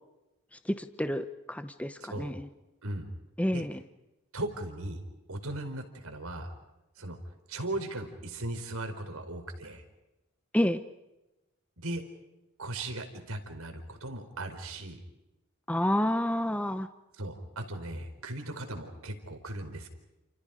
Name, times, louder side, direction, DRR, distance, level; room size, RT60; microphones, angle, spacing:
voice 1, 0.7-2.5 3.4-3.8 10.5-10.8 15.7-16.9, left 1 dB, 5° left, 10 dB, 0.9 m, -29 dB
voice 2, 2.0-2.3 2.8-3.1 3.5-3.6 4.3-5.0 5.3-6.5 7.0-7.2 7.5-9.8 11.8-12.0 12.6-15.0 17.1-19.9, right 1 dB, 85° right, 6 dB, 4.6 m, -37 dB
30.0 x 29.0 x 5.1 m, 0.99 s
head